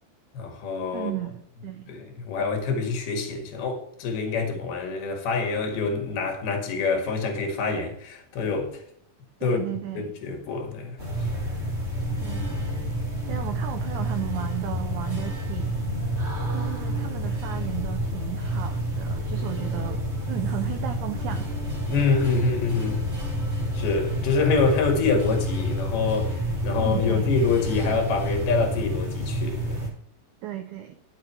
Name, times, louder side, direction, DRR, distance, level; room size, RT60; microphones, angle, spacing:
voice 1, 0.3-1.1 1.9-8.8 9.4-9.6 10.0-11.0 21.9-23.1 23.8-29.8, left 4 dB, 85° left, 3.7 m, -26 dB
voice 2, 0.9-1.9 9.4-10.1 12.2-12.6 13.3-15.9 16.5-20.0 20.3-21.5 26.8-27.3 30.4-31.0, right 12 dB, 80° right, 1.8 m, -35 dB
sound 1, 11.0-29.9, equal, 25° right, 1.8 m, -29 dB
10.5 x 7.6 x 4.5 m
omnidirectional pair, 4.3 m